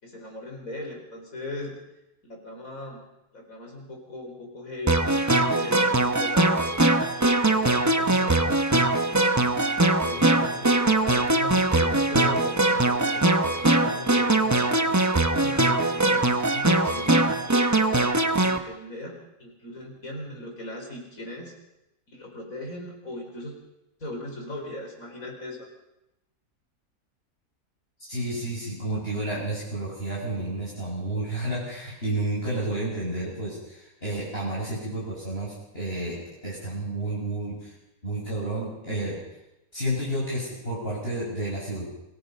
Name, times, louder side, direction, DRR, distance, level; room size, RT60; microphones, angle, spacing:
voice 1, 0.0-1.8 2.2-3.0 3.3-6.7 7.2-8.5 8.9-9.2 9.7-17.3 17.9-21.5 22.1-23.6 24.0-25.7, left 2 dB, 70° left, 1 dB, 5.0 m, -39 dB
sound 1, 4.9-18.6, right 2 dB, 15° right, 0.8 m, -22 dB
voice 2, 28.1-36.2 36.4-37.7 38.0-39.2 39.7-41.9, right 1 dB, 40° left, -6 dB, 6.7 m, -31 dB
27.5 x 17.5 x 5.4 m, 0.90 s
omnidirectional pair, 1.5 m